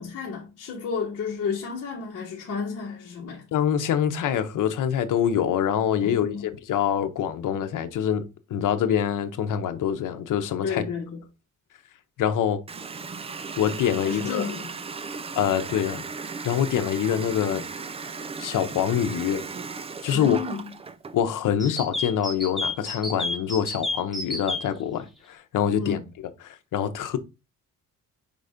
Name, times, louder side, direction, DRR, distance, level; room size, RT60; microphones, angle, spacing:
voice 1, 0.0-3.4 6.0-6.5 10.6-11.2 14.0-14.7 20.1-20.7 25.8-26.0, left 5 dB, 50° left, 1.4 m, -31 dB
voice 2, 3.5-8.2 8.5-10.8 12.2-12.6 13.6-14.5 15.3-16.0 16.4-17.6 18.4-19.4 20.0-20.4 21.1-26.0 26.4-27.2, left 9 dB, 75° left, 1.0 m, -25 dB
Water tap faucet, 12.7-21.2, right 4 dB, 20° right, 0.4 m, -36 dB
sound 1, 21.6-24.6, left 2 dB, ahead, 1.0 m, -29 dB
5.3 x 4.0 x 5.1 m
cardioid pair, 160°, 31 cm